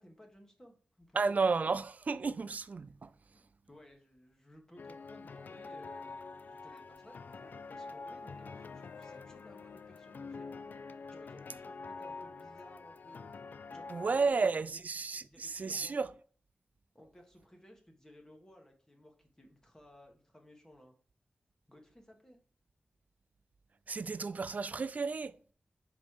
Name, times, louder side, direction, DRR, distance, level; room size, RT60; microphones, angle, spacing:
voice 1, 0.0-1.4 3.3-10.7 11.1-13.3 13.7-14.7 15.1-16.0 16.9-21.0 21.7-22.4, equal, 20° left, 1.4 m, -58 dB
voice 2, 1.1-3.1 13.9-16.1 23.9-25.4, right 4 dB, 55° right, 0.4 m, -32 dB
sound 1, 4.8-14.3, left 4 dB, 70° left, 0.3 m, -46 dB
5.2 x 4.2 x 4.7 m
wide cardioid pair, 70°, 3 cm